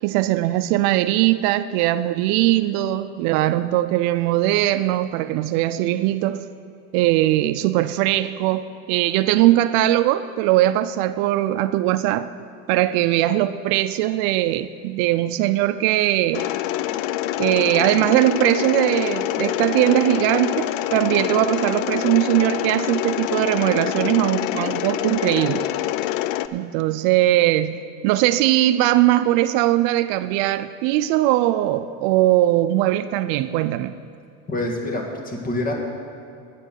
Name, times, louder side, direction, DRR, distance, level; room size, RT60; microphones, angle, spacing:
voice 1, 0.0-6.4 6.9-12.3 12.7-16.5 17.4-25.7 26.5-34.0, right 14 dB, 65° right, 0.5 m, -20 dB
Mechanisms, 16.3-26.5, left 13 dB, 65° left, 0.5 m, -25 dB
voice 2, 34.5-35.7, left 1 dB, 20° left, 1.7 m, -26 dB
10.0 x 9.1 x 6.4 m
cardioid pair, 145°, 38 cm